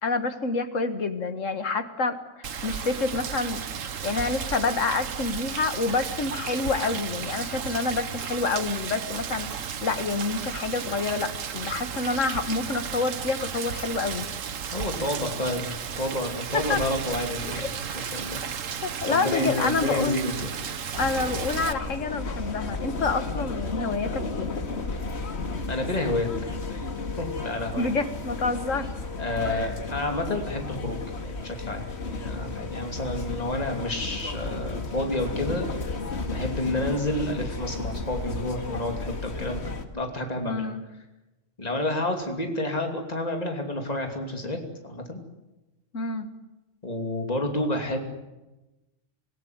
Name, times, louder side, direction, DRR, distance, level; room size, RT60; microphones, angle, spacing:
voice 1, 0.0-3.6 4.0-14.3 16.5-16.8 17.5-17.7 18.8-20.2 21.0-24.5 27.7-28.9 29.4-29.7 40.5-40.8 45.9-46.3, left 3 dB, 75° left, 9 dB, 2.0 m, -28 dB
Rain, 2.4-21.7, right 7 dB, 90° right, 1.5 m, -34 dB
voice 2, 14.7-17.6 17.9-18.4 19.1-20.5 25.7-26.5 27.2-27.9 29.2-35.7 36.3-40.7 41.6-44.6 44.8-45.2 46.8-48.0, left 1 dB, 30° left, 3 dB, 3.0 m, -30 dB
Train int moving passenger talking, 20.9-39.8, left 3 dB, 55° left, 2.1 m, -33 dB
26.5 x 16.5 x 9.5 m, 1.0 s
omnidirectional pair, 1.3 m